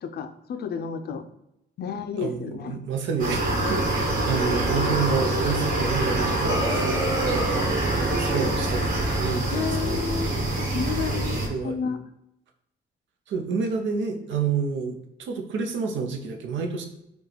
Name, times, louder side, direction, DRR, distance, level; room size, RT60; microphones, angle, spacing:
voice 1, 0.0-1.2 1.8-2.8 9.5-10.3 10.6-12.0, left 7 dB, 55° left, 8 dB, 0.4 m, -31 dB
voice 2, 2.2-3.4 3.7-6.4 6.7-6.8 7.5-10.4 11.1-11.8 13.3-16.8, right 5 dB, 75° right, 4 dB, 0.6 m, -29 dB
sound 1, 3.2-11.5, right 2 dB, 45° right, 1.5 m, -25 dB
sound 2, 6.4-8.6, right 1 dB, 15° right, 0.8 m, -29 dB
4.7 x 2.3 x 3.2 m, 0.83 s
cardioid pair, 90°, 20 cm